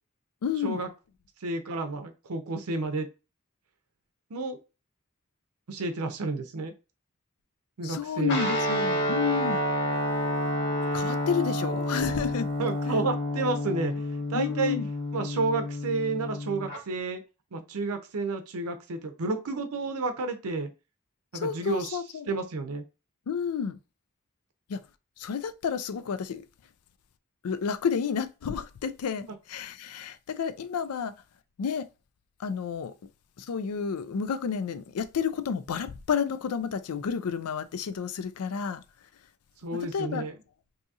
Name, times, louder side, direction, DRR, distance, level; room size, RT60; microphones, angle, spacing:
voice 1, 0.4-0.8 7.8-9.6 10.9-12.5 12.9-13.0 14.3-14.9 21.3-22.3 23.3-23.8 24.7-24.8 25.2-26.4 27.4-31.1 31.6-31.9 32.4-32.9 33.4-38.8 39.7-40.3, left 6 dB, 80° left, 0.4 m, -31 dB
voice 2, 1.4-3.1 4.3-4.6 5.7-6.7 7.8-8.4 12.6-13.9 14.3-14.8 15.1-17.2 17.5-20.7 21.3-22.0 22.3-22.8 39.6-40.3, right 3 dB, 80° right, 0.6 m, -31 dB
Guitar, 8.3-16.8, left 1 dB, 55° left, 1.1 m, -29 dB
2.7 x 2.7 x 3.5 m
head